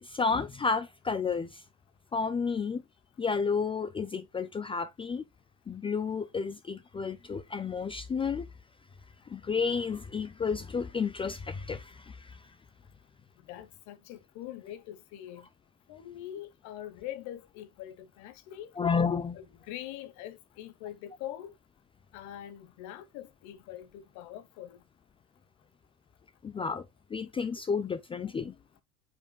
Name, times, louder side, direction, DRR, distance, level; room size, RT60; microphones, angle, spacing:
voice 1, 0.0-1.6 2.1-2.8 3.2-5.2 5.7-8.5 9.3-12.4 18.8-19.4 26.4-26.8 27.1-28.5, left 5 dB, 15° left, 0.5 m, -31 dB
voice 2, 13.4-15.5 15.9-18.8 19.3-21.5 22.1-24.8, left 12 dB, 55° left, 1.1 m, -43 dB
8.8 x 5.2 x 2.3 m
hypercardioid pair, 100°, 34 cm